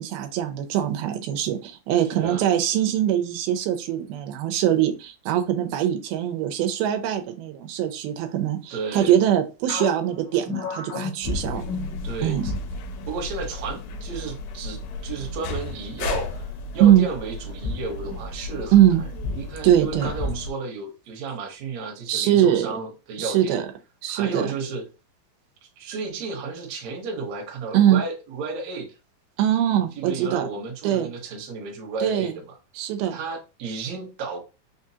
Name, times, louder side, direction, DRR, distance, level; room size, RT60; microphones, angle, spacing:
voice 1, 0.0-11.6 12.2-12.5 16.8-17.1 18.7-19.0 19.6-20.1 22.1-22.7 23.2-23.7 24.0-24.5 27.7-28.0 29.4-30.5 30.8-31.1 32.0-32.4 32.8-33.2, right 11 dB, 90° right, 2.5 m, -22 dB
voice 2, 1.9-2.4 8.7-9.2 12.0-12.5 13.1-16.4 16.7-18.7 19.3-23.6 24.1-24.9 25.8-28.9 30.0-32.4 33.1-34.4, right 4 dB, 65° right, 1.9 m, -33 dB
sound 1, 9.7-12.5 12.9-13.1 13.7-14.2, left 5 dB, 65° left, 2.0 m, -34 dB
sound 2, 11.2-20.5, left 2 dB, 90° left, 2.5 m, -33 dB
5.8 x 2.4 x 2.7 m
omnidirectional pair, 4.3 m